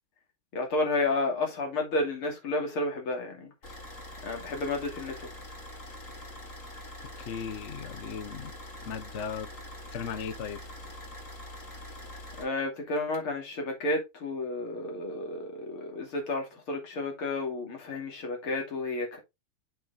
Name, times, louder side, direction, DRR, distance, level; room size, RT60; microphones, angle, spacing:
voice 1, 0.5-3.5 4.2-5.3 12.4-19.2, left 2 dB, 80° left, 3.4 m, -31 dB
Car / Idling, 3.6-12.4, left 1 dB, 35° left, 2.6 m, -44 dB
voice 2, 7.2-8.5 8.8-9.5 9.9-10.6, left 7 dB, 55° left, 0.8 m, -37 dB
7.1 x 5.9 x 3.6 m
omnidirectional pair, 2.4 m